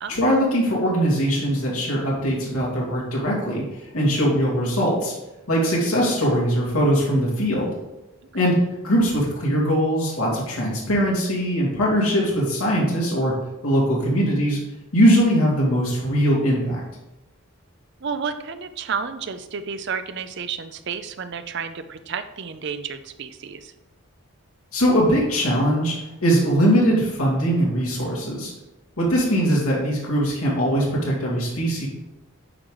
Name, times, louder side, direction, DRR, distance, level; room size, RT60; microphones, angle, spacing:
voice 1, 0.1-5.1 5.5-7.7 8.3-8.6 8.8-13.3 13.6-14.6 14.9-16.8 24.7-28.5 29.0-31.9, equal, 85° left, -4 dB, 2.2 m, -21 dB
voice 2, 18.0-23.7 29.2-29.3, right 6 dB, 50° right, 10 dB, 0.5 m, -31 dB
9.7 x 4.9 x 3.8 m, 0.99 s
head